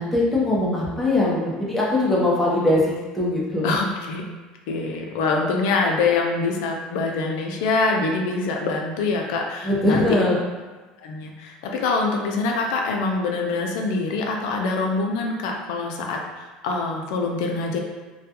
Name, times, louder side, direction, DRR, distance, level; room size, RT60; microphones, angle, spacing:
voice 1, 0.0-3.7 9.6-10.4, left 1 dB, 5° left, -6 dB, 0.6 m, -21 dB
voice 2, 3.6-4.2 4.7-10.2 11.0-17.8, left 3 dB, 85° left, 1 dB, 0.4 m, -24 dB
2.3 x 2.2 x 2.8 m, 1.3 s
cardioid pair, 150°, 3 cm